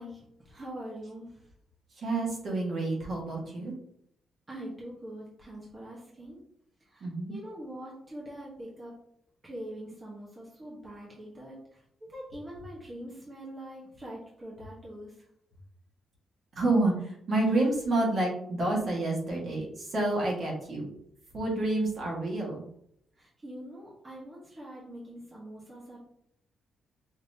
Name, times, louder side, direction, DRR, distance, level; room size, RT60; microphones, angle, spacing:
voice 1, 0.0-1.5 4.5-6.4 6.8-8.9 9.4-15.1 23.1-26.0, right 1 dB, 25° right, -5 dB, 1.2 m, -44 dB
voice 2, 1.9-3.7 7.0-7.4 16.5-20.9 21.3-22.6, right 2 dB, 55° right, -3 dB, 1.7 m, -29 dB
5.3 x 3.0 x 2.8 m, 0.72 s
cardioid pair, 110°, 0 cm